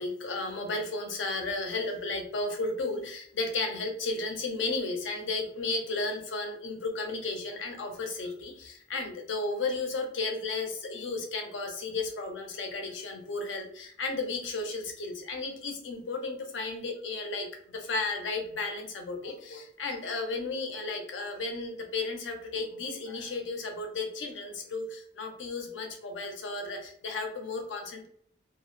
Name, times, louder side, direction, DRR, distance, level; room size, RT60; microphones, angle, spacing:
voice 1, 0.0-28.1, left 3 dB, 80° left, 3 dB, 0.6 m, -34 dB
2.2 x 2.0 x 3.0 m, 0.63 s
head